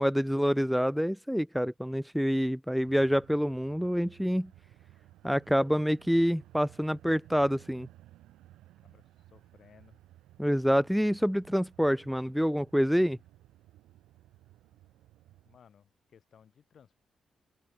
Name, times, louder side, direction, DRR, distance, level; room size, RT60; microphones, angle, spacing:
voice 1, 0.0-4.5 5.2-7.9 10.4-13.2, equal, ahead, 0.4 m, -27 dB
sound 1, 2.9-15.6, right 15 dB, 85° right, 3.5 m, -57 dB
voice 2, 8.8-10.0 15.5-16.9, left 7 dB, 65° left, 2.1 m, -60 dB
open air
supercardioid pair, 55°, 0 cm